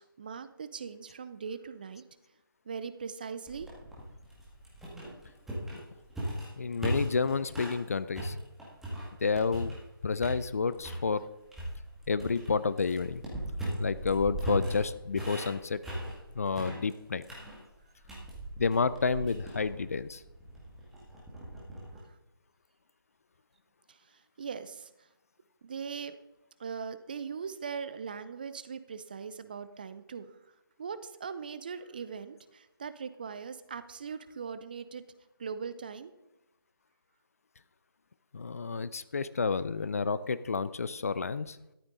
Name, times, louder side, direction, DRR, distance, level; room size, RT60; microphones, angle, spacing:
voice 1, 0.0-2.0 2.7-3.7 23.9-25.1 25.6-26.1 26.6-30.4 30.8-35.0 35.4-36.1, right 6 dB, 25° right, 13 dB, 0.5 m, -40 dB
sound 1, 3.5-7.8 8.1-9.9 10.2-11.0 11.5-22.0, right 1 dB, ahead, 1.9 m, -38 dB
voice 2, 6.6-8.4 9.2-9.7 10.0-11.2 12.1-13.2 13.8-15.8 16.3-17.2 18.6-20.2 38.3-41.6, left 5 dB, 40° left, 15 dB, 0.5 m, -30 dB
13.0 x 12.0 x 3.9 m, 0.90 s
figure-of-eight pair, 155°, 12 cm